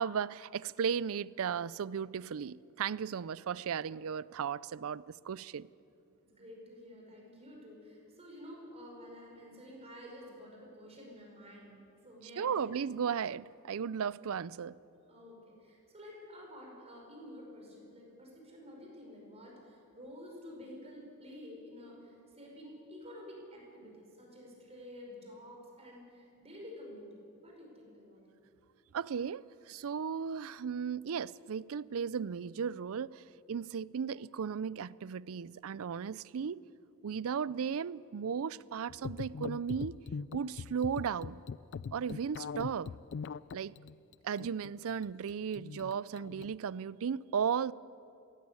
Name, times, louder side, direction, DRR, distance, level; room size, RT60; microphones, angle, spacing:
voice 1, 0.0-5.7 12.4-14.8 28.9-36.6 37.0-39.9 40.3-41.4 41.9-42.9 43.5-43.7 44.2-47.7, right 7 dB, 65° right, 0.4 m, -35 dB
voice 2, 6.2-11.8 12.0-12.7 15.0-28.4, left 1 dB, 30° right, 5.3 m, -50 dB
sound 1, 38.9-46.5, left 5 dB, 55° left, 0.4 m, -42 dB
17.0 x 16.0 x 9.7 m
head